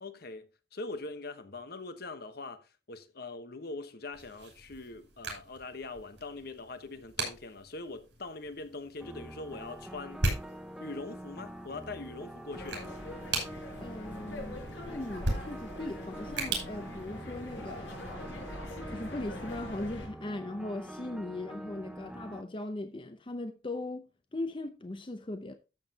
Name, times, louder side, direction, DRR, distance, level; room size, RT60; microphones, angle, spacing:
voice 1, 0.0-10.3 10.8-12.9, left 3 dB, 60° left, 1.1 m, -42 dB
sound 1, 4.1-17.8, right 2 dB, 75° right, 5.5 m, -39 dB
sound 2, 9.0-22.4, equal, 5° right, 0.8 m, -45 dB
sound 3, 12.5-20.1, left 1 dB, 90° left, 5.4 m, -44 dB
voice 2, 13.8-18.4 18.9-25.5, left 2 dB, 30° left, 0.7 m, -39 dB
13.0 x 7.5 x 2.8 m
head